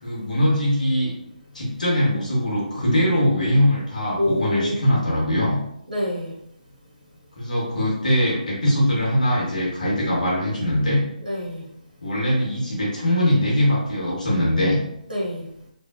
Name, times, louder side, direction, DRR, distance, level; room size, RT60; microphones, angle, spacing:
voice 1, 0.0-1.1 1.5-5.6 7.4-11.0 12.0-14.8, equal, 60° left, -5 dB, 1.0 m, -21 dB
voice 2, 4.2-5.0 5.9-6.3 11.2-11.6 15.1-15.5, left 1 dB, 75° right, -3 dB, 1.0 m, -26 dB
2.6 x 2.3 x 2.4 m, 0.76 s
figure-of-eight pair, 145°, 5 cm